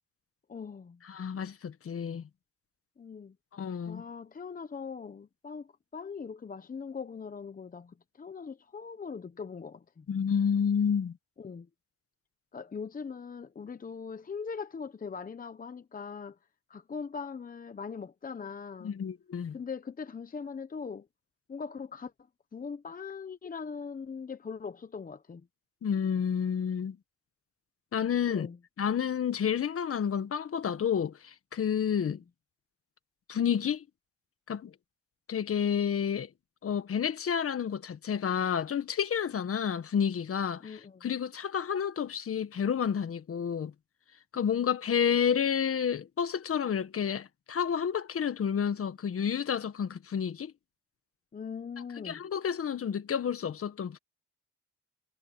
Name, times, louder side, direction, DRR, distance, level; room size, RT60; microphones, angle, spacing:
voice 1, 0.5-1.0 3.0-3.4 3.8-10.1 11.4-11.7 12.5-16.4 16.7-18.9 19.5-21.1 21.5-22.1 22.5-25.5 28.3-28.6 32.1-32.2 40.6-41.1 51.3-52.2, left 5 dB, 30° left, 0.9 m, -41 dB
voice 2, 1.1-2.2 3.5-4.0 10.1-11.1 18.8-19.6 25.8-27.0 27.9-28.5 28.8-32.2 33.3-33.8 34.5-34.7 35.3-36.3 36.6-43.7 44.3-50.5 52.0-54.0, left 7 dB, 50° left, 1.5 m, -30 dB
cardioid pair, 90°, 30 cm